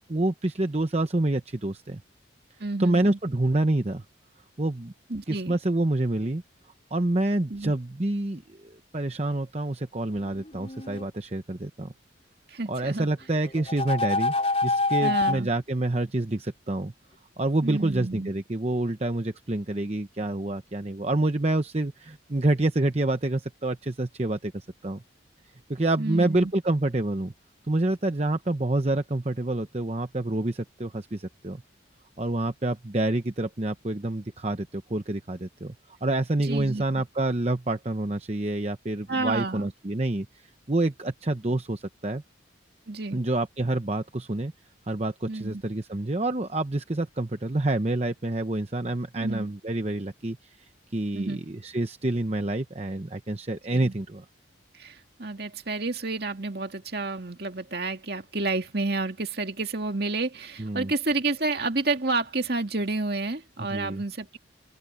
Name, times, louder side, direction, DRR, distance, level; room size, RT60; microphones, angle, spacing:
voice 1, 0.1-2.0 2.8-4.0 4.6-4.9 5.3-6.4 6.9-11.9 12.7-14.3 14.6-16.9 17.4-25.0 25.7-27.3 27.7-31.6 32.2-35.7 36.0-42.2 43.1-44.5 44.9-50.6 50.9-54.2 60.6-60.9 63.7-64.0, right 2 dB, 30° right, 0.9 m, -27 dB
voice 2, 2.6-3.2 5.1-5.6 7.5-7.7 12.5-13.1 15.0-15.5 17.6-18.3 26.0-26.5 36.4-36.8 39.1-39.7 42.9-43.2 45.3-45.6 49.1-49.5 51.1-51.4 53.7-53.9 54.7-64.4, right 3 dB, 55° right, 2.3 m, -30 dB
sound 1, 10.2-11.1 13.4-15.4, left 3 dB, 30° left, 5.7 m, -26 dB
open air
head